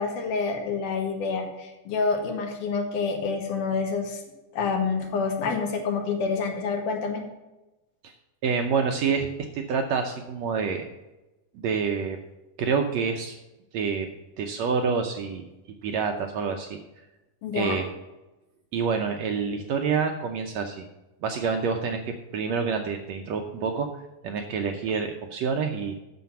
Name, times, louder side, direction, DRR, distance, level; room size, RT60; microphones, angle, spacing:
voice 1, 0.0-4.2 4.5-7.2 17.4-17.8, left 4 dB, 75° left, 3 dB, 3.0 m, -27 dB
voice 2, 8.4-9.3 9.5-10.9 11.5-12.2 12.6-13.4 13.7-14.1 14.4-15.5 15.8-16.8 17.5-17.9 18.7-20.8 21.2-23.9 24.2-25.9, right 5 dB, 75° right, 4 dB, 1.6 m, -27 dB
9.4 x 6.9 x 5.8 m, 1.0 s
omnidirectional pair, 3.7 m